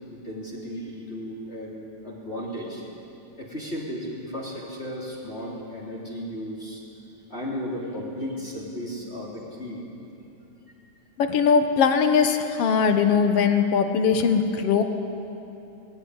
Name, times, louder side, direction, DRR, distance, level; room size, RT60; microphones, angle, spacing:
voice 1, 0.1-2.8 3.4-6.8 7.3-9.8, equal, 20° left, -5 dB, 3.2 m, -35 dB
voice 2, 11.2-14.8, left 6 dB, 60° left, 7 dB, 1.7 m, -20 dB
20.0 x 16.5 x 9.7 m, 2.8 s
omnidirectional pair, 3.9 m